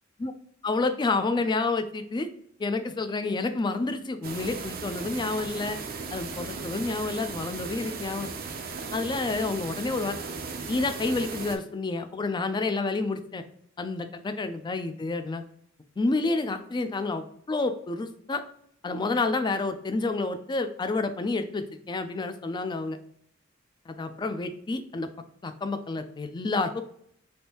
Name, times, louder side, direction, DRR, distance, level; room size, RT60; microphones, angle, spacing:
voice 1, 0.6-2.3 2.6-5.8 6.1-8.3 8.9-10.2 10.7-13.4 13.8-15.4 16.0-18.4 18.8-23.0 23.9-25.1 25.4-26.8, left 3 dB, 25° left, 8 dB, 0.3 m, -29 dB
sound 1, 4.2-11.6, right 4 dB, 50° right, 0.5 m, -37 dB
3.4 x 2.6 x 2.8 m, 0.66 s
head